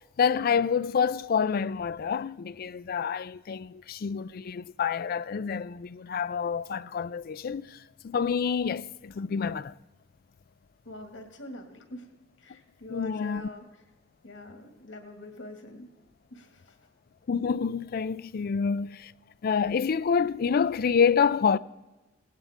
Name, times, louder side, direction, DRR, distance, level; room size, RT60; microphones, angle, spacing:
voice 1, 0.0-7.8 8.0-9.7 12.9-13.5 17.3-19.1 19.4-21.6, left 6 dB, 55° left, 0.4 m, -27 dB
voice 2, 10.9-12.1 12.4-13.7 14.2-15.9 16.3-16.8, left 1 dB, 90° left, 2.1 m, -44 dB
18.0 x 17.5 x 3.6 m
head